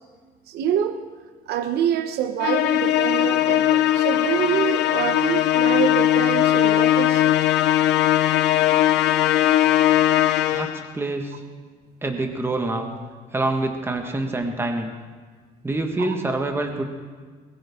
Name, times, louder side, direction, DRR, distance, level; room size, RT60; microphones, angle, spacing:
voice 1, 0.5-1.0 1.5-7.4 16.0-16.1, right 9 dB, 75° right, 8 dB, 0.8 m, -26 dB
Musical instrument, 2.4-10.9, left 13 dB, 80° left, 0.6 m, -19 dB
voice 2, 10.5-11.4 12.0-12.9 13.3-14.9 15.6-16.9, right 2 dB, 15° right, 3 dB, 1.5 m, -26 dB
21.0 x 14.5 x 3.7 m, 1.5 s
cardioid pair, 110°, 17 cm